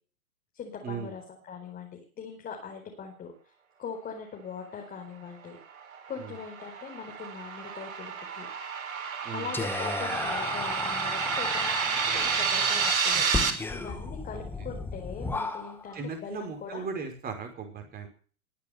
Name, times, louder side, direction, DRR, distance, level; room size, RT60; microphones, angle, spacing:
voice 1, 0.5-1.2 1.5-3.3 3.8-5.6 6.1-8.5 9.3-16.8, left 6 dB, 20° left, 1 dB, 4.9 m, -41 dB
sound 1, 5.8-13.5, right 6 dB, 70° right, 3.9 m, -30 dB
Whispering, 9.5-16.0, left 3 dB, 5° left, 1.8 m, -34 dB
voice 2, 14.3-14.7 15.9-18.1, right 5 dB, 20° right, 5 dB, 5.7 m, -37 dB
22.0 x 8.6 x 7.0 m, 0.42 s
hypercardioid pair, 125°, 43 cm